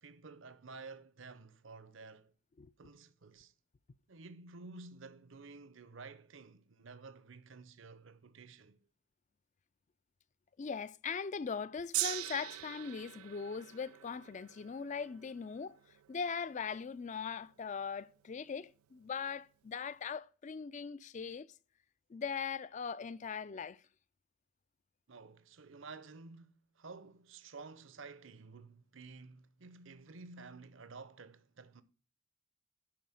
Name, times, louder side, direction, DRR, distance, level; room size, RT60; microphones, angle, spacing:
voice 1, 0.0-2.3 2.8-3.5 4.1-8.8 25.1-31.8, right 4 dB, 65° right, 0.7 m, -52 dB
voice 2, 10.6-15.8 16.1-21.5 22.1-23.8, left 6 dB, 35° left, 0.4 m, -40 dB
Gong, 11.9-18.3 19.1-19.2, right 18 dB, 85° right, 0.4 m, -43 dB
11.0 x 4.2 x 7.6 m
head